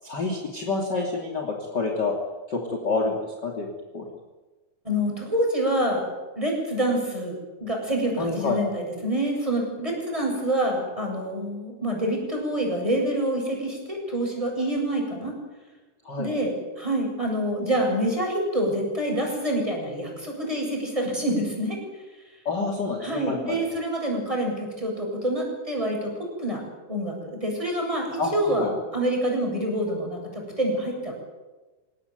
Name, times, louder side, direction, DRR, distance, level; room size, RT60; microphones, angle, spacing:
voice 1, 0.0-2.1 2.5-4.1 8.2-8.6 16.0-16.3 22.4-23.6 28.2-28.7, left 3 dB, 30° left, 0 dB, 3.3 m, -28 dB
voice 2, 4.8-6.0 6.4-15.4 16.2-21.8 23.0-26.6 26.9-31.1, right 1 dB, 10° right, 1 dB, 7.6 m, -27 dB
28.0 x 18.0 x 9.4 m, 1.2 s
omnidirectional pair, 4.0 m